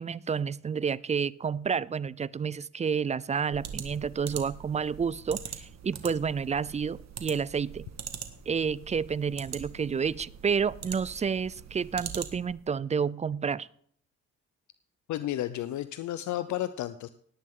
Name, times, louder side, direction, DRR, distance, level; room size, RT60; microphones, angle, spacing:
voice 1, 0.0-7.9 8.5-13.7, right 6 dB, 25° right, 21 dB, 0.4 m, -30 dB
sound 1, 3.5-12.6, right 8 dB, 60° right, 1.7 m, -43 dB
voice 2, 15.1-17.1, left 13 dB, 70° left, 13 dB, 0.6 m, -32 dB
18.0 x 9.8 x 3.8 m, 0.64 s
cardioid pair, 90°, 30 cm